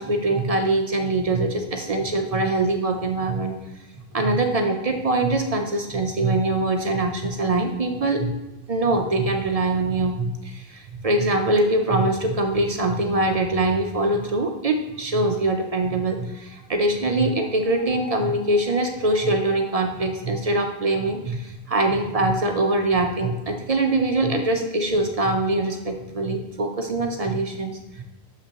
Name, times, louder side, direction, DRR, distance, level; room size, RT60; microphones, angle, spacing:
voice 1, 0.0-3.5 4.1-8.3 8.7-27.7 28.0-28.1, right 2 dB, 45° right, 4 dB, 0.6 m, -23 dB
6.8 x 5.6 x 2.9 m, 1.0 s
omnidirectional pair, 1.1 m